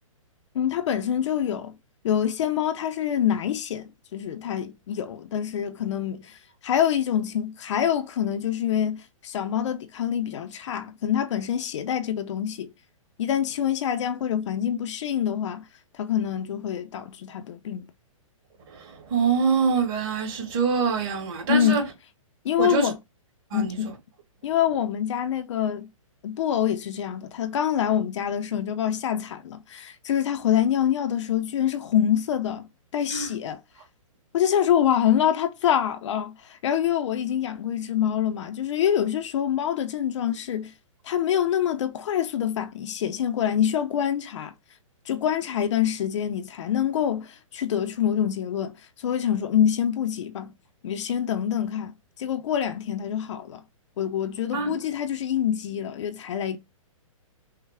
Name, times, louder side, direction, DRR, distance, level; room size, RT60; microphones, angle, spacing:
voice 1, 0.5-1.7 2.0-6.4 6.6-12.7 13.2-15.6 15.9-17.9 21.5-21.8 22.4-23.0 23.5-23.9 24.4-25.9 26.2-32.7 32.9-33.6 34.3-40.7 41.0-44.5 45.1-50.5 50.8-53.6 54.0-56.6, left 9 dB, 60° left, 0.7 m, -26 dB
voice 2, 18.7-21.8 22.6-22.9 23.5-23.8 33.1-33.3 54.5-54.8, right 5 dB, 45° right, 2.4 m, -25 dB
5.6 x 2.3 x 3.4 m
hypercardioid pair, 140°, 18 cm